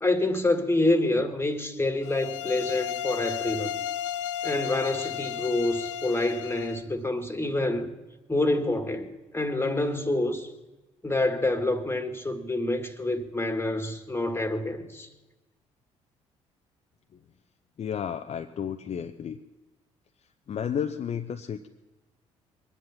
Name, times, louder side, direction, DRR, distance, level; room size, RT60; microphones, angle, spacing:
voice 1, 0.0-3.8 4.4-7.9 8.3-10.5 11.0-15.1, left 2 dB, 15° left, 1.9 m, -27 dB
sound 1, 2.0-6.8, left 10 dB, 80° left, 0.5 m, -33 dB
voice 2, 17.8-19.4 20.5-21.7, left 8 dB, 40° left, 0.7 m, -32 dB
23.0 x 10.5 x 5.8 m
figure-of-eight pair, 50°, 16 cm